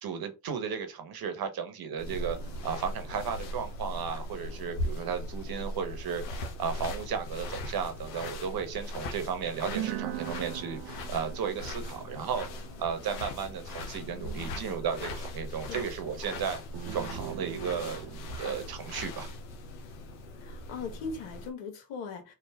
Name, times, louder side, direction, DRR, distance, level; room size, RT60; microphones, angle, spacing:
voice 1, 0.0-2.4 2.6-12.5 12.8-16.6 16.9-19.3, right 6 dB, 50° right, 1.1 m, -34 dB
sound 1, 2.0-21.5, left 1 dB, 90° left, 0.8 m, -39 dB
sound 2, 2.1-7.9 8.4-8.6 9.3-9.4 9.7-15.7 16.7-19.4, right 14 dB, 65° right, 0.5 m, -43 dB
voice 2, 13.9-14.8 15.6-16.2 20.4-22.3, left 5 dB, 70° left, 1.3 m, -41 dB
3.5 x 2.4 x 3.5 m
hypercardioid pair, 60°, 47 cm